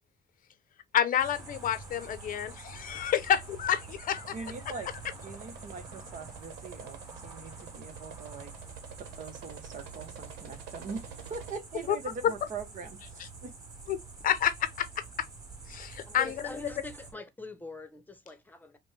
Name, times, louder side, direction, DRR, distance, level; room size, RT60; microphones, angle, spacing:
voice 1, 0.9-4.3 11.9-12.0 13.9-14.0 14.2-14.9 15.2-15.3 15.7-16.5, left 9 dB, 55° left, 0.7 m, -29 dB
sound 1, 1.2-17.1, right 3 dB, 20° right, 2.9 m, -47 dB
sound 2, 2.9-11.6, right 8 dB, 90° right, 1.0 m, -49 dB
voice 2, 4.3-4.9 5.2-8.5 9.0-11.0 11.3-13.5, right 4 dB, 50° right, 1.1 m, -42 dB
voice 3, 16.1-18.8, left 2 dB, 10° left, 1.0 m, -44 dB
5.1 x 2.3 x 3.3 m
cardioid pair, 110°, 17 cm